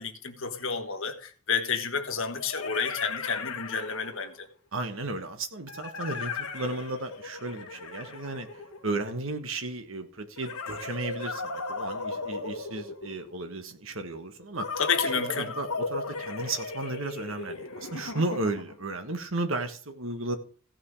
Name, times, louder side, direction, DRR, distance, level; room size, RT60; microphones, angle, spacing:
voice 1, 0.0-4.5 14.8-15.5, left 6 dB, 65° left, 1.5 m, -30 dB
sound 1, 0.6-0.7 2.1-4.4 5.7-9.2 10.4-13.4 14.6-18.9, left 4 dB, 85° left, 1.4 m, -37 dB
voice 2, 4.7-8.5 8.8-14.8 15.1-20.4, right 2 dB, 65° right, 1.4 m, -34 dB
15.5 x 6.0 x 4.8 m
head